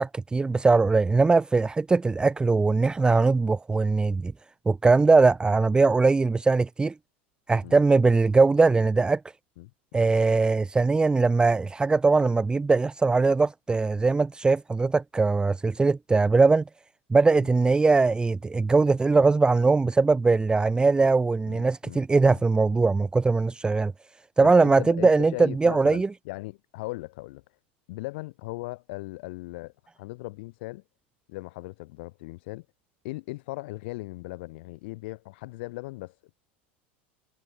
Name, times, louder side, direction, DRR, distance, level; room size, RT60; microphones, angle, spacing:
voice 1, 0.0-4.3 4.7-6.9 7.5-9.2 9.9-16.6 17.1-23.9 24.4-26.1, right 3 dB, 15° right, 0.6 m, -21 dB
voice 2, 9.6-10.2 17.4-17.5 21.5-22.4 24.4-27.4 27.9-30.8 31.3-32.7 33.0-36.3, left 22 dB, 70° left, 2.3 m, -38 dB
hypercardioid pair, 90°, 6 cm